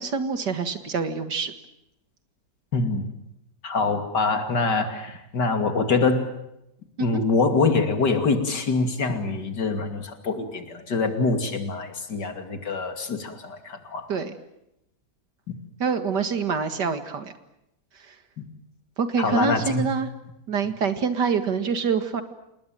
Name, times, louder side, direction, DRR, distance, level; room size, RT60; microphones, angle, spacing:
voice 1, 0.0-1.5 7.0-7.2 14.1-14.4 15.8-17.3 18.1-18.2 19.0-20.1 20.5-22.2, right 5 dB, 80° right, 9 dB, 2.5 m, -26 dB
voice 2, 2.7-3.0 3.6-6.3 7.0-14.1 15.5-15.6 18.4-18.5 19.2-19.9, left 3 dB, 80° left, 6 dB, 3.2 m, -24 dB
28.0 x 19.5 x 9.2 m, 0.85 s
omnidirectional pair, 1.8 m